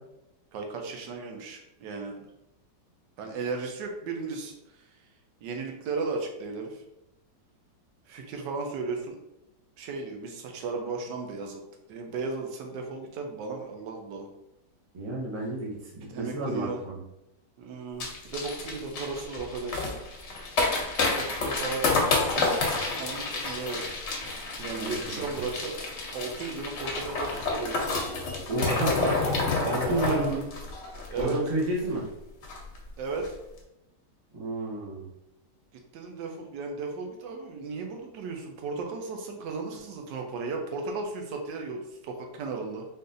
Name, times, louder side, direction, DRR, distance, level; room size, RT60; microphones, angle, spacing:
voice 1, 0.5-2.3 3.2-5.0 5.4-6.8 8.1-9.2 9.8-11.6 11.9-14.3 16.1-16.8 17.6-19.9 21.1-23.8 24.2-24.3 24.6-25.8 26.1-27.9 29.8-30.3 31.1-31.4 33.0-33.4 35.9-42.9, right 4 dB, 80° right, 3 dB, 1.2 m, -35 dB
voice 2, 14.9-17.0 24.6-24.9 28.5-30.4 31.1-32.0 34.3-35.1, right 2 dB, 35° right, -5 dB, 0.4 m, -31 dB
sound 1, 18.0-31.8 32.1-32.2 32.4-32.8 33.1-33.3, left 3 dB, 60° left, 0.7 m, -29 dB
3.8 x 2.6 x 2.5 m, 0.87 s
omnidirectional pair, 1.9 m